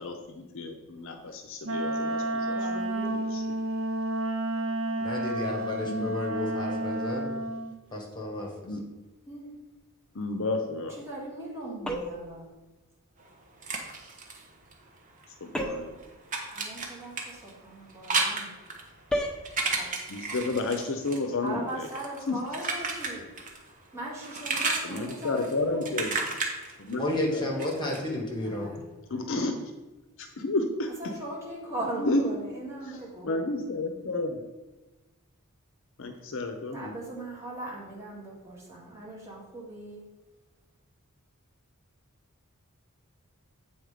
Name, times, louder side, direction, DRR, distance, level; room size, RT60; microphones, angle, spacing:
voice 1, 0.0-2.7 3.0-3.6 5.8-6.2 8.7-8.9 10.1-11.0 15.4-15.9 20.1-21.9 22.3-22.4 24.8-26.2 26.8-27.5 29.1-29.6 30.2-31.2 32.0-32.3 32.8-34.4 36.0-37.0, left 2 dB, 60° left, 5 dB, 0.6 m, -31 dB
Wind instrument woodwind instrument, 1.6-7.7, right 1 dB, 65° right, 0.6 m, -31 dB
voice 2, 2.5-3.2 9.3-9.5 11.1-12.4 16.5-18.5 19.7-19.9 21.4-23.2 23.9-25.8 28.4-28.8 31.0-33.4 36.7-40.0, right 1 dB, 15° right, -6 dB, 2.2 m, -39 dB
voice 3, 5.0-7.3 7.9-8.5 27.0-28.7, left 1 dB, 20° left, -1 dB, 1.6 m, -31 dB
sound 1, 11.8-12.3 15.5-16.0 19.1-19.4, equal, 5° left, 0.7 m, -31 dB
sound 2, 13.2-15.3 15.6-23.7 24.0-28.0, right 3 dB, 35° right, 1.1 m, -33 dB
7.9 x 4.2 x 5.0 m, 1.2 s
head